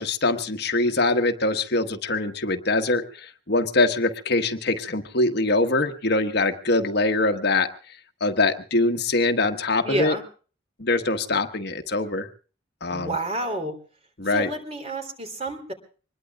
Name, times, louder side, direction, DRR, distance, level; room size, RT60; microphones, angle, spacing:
voice 1, 0.0-7.7 8.2-10.1 10.8-12.3 12.8-13.2 14.2-14.5, left 2 dB, 55° left, 7 dB, 1.3 m, -23 dB
voice 2, 9.8-10.2 12.9-13.8 14.3-15.7, right 1 dB, 30° right, 6 dB, 3.3 m, -29 dB
25.0 x 21.0 x 2.4 m, 0.39 s
head